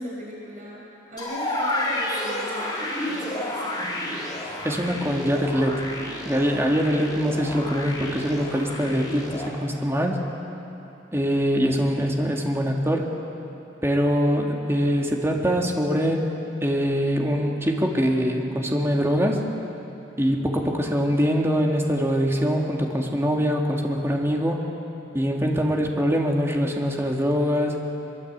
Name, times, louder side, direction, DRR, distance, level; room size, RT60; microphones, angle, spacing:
voice 1, 0.0-3.6, equal, 45° right, -4 dB, 6.2 m, -38 dB
sound 1, 1.2-9.5, left 1 dB, 25° left, 4.4 m, -31 dB
voice 2, 4.6-5.9 6.2-10.2 11.1-13.1 13.8-16.4 16.6-19.4 20.2-24.6 25.1-27.8, equal, 15° right, 0 dB, 2.3 m, -23 dB
23.0 x 22.5 x 8.3 m, 2.9 s
head